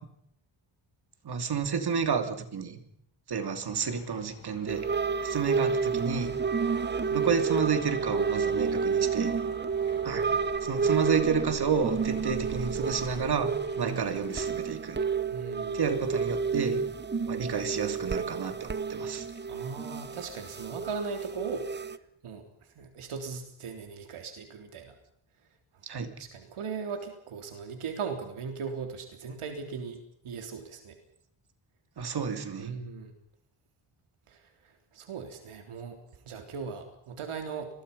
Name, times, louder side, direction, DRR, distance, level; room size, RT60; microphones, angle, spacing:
voice 1, 1.2-2.8 3.3-4.9 5.2-6.3 7.1-9.3 10.0-10.3 10.6-13.5 13.8-15.0 15.7-16.8 17.3-19.3 25.8-26.1 32.0-32.7, right 6 dB, 50° right, 7 dB, 3.0 m, -30 dB
sound 1, 3.5-14.5, left 5 dB, 55° left, 7.4 m, -51 dB
sound 2, 4.7-22.0, right 5 dB, 20° right, 0.8 m, -30 dB
voice 2, 15.3-15.8 19.5-21.7 22.2-22.4 22.8-24.9 26.2-30.0 30.2-31.0 32.6-33.1 34.3-34.4 34.9-36.0 36.3-37.7, right 5 dB, 80° right, 5 dB, 3.8 m, -38 dB
28.0 x 21.5 x 5.5 m, 0.71 s
wide cardioid pair, 160°, 50 cm